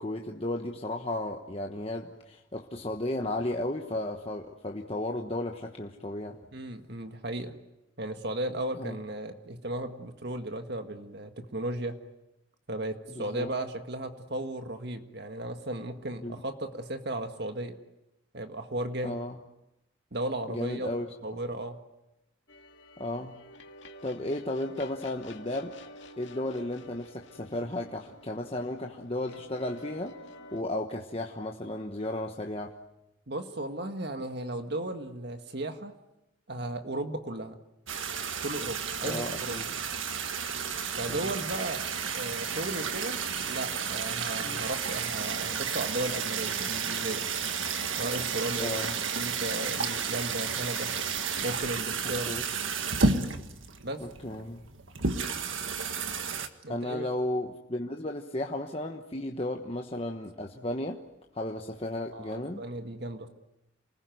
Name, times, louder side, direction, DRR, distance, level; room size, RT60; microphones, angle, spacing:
voice 1, 0.0-6.4 8.7-9.0 13.1-13.5 16.2-16.4 19.0-19.4 20.5-21.1 23.0-23.4 24.0-25.8 26.2-30.2 30.5-32.7 39.0-39.7 41.1-41.3 44.4-44.7 48.6-48.9 52.3-52.4 54.2-54.6 56.7-61.0 61.3-62.6, left 1 dB, 30° left, 2 dB, 1.2 m, -34 dB
voice 2, 6.5-7.6 8.0-12.0 12.7-17.8 18.3-19.2 20.1-20.9 21.2-21.8 33.3-35.9 36.5-37.6 38.4-39.7 41.0-41.8 42.1-43.2 43.4-47.2 48.0-48.8 49.2-50.9 51.4-52.3 53.8-54.0 56.6-57.1 62.1-63.3, right 1 dB, 55° right, 7 dB, 1.8 m, -35 dB
sound 1, 22.5-30.6, left 2 dB, 65° left, 2.1 m, -50 dB
sound 2, 37.9-56.5, right 5 dB, 75° right, 1.7 m, -32 dB
28.5 x 20.0 x 9.3 m, 0.92 s
head